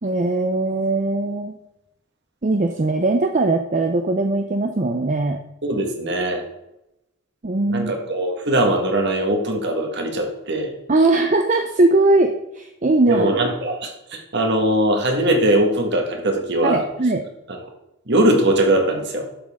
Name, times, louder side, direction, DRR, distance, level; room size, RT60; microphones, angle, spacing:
voice 1, 0.0-1.5 2.4-5.4 7.4-7.9 10.9-13.3 16.6-17.2, right 2 dB, 35° right, 5 dB, 0.6 m, -20 dB
voice 2, 5.6-6.4 7.7-10.7 13.1-16.8 17.5-17.6 18.1-19.3, right 1 dB, 50° right, 3 dB, 1.7 m, -20 dB
11.5 x 7.4 x 3.7 m, 0.89 s
head